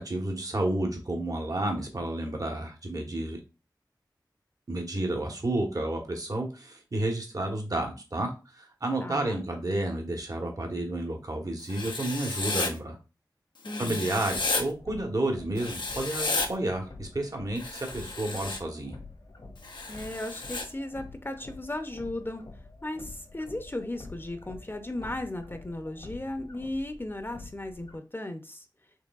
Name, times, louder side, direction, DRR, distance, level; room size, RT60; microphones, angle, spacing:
voice 1, 0.0-3.4 4.7-13.0 13.8-19.0, right 1 dB, 50° right, 2 dB, 1.1 m, -31 dB
voice 2, 9.0-9.4 13.6-14.1 19.9-22.4 22.8-28.6, left 1 dB, 30° left, 7 dB, 0.6 m, -36 dB
Writing, 11.7-12.7 13.6-14.6 15.6-16.5 17.6-18.6 19.6-20.6, left 3 dB, 85° left, 0.6 m, -32 dB
sound 1, 14.3-28.0, left 3 dB, 65° left, 1.0 m, -48 dB
4.6 x 3.2 x 2.4 m, 0.30 s
cardioid pair, 40°, 8 cm